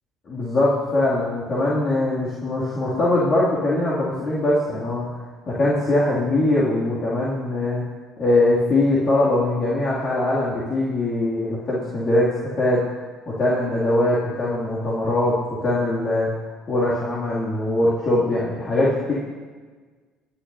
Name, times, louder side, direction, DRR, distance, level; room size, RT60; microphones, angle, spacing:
voice 1, 0.3-5.2 5.5-7.8 8.2-12.8 13.3-16.3 16.7-19.1, left 1 dB, 45° left, -8 dB, 2.5 m, -22 dB
20.5 x 9.9 x 2.8 m, 1.4 s
hypercardioid pair, 65°, 0 cm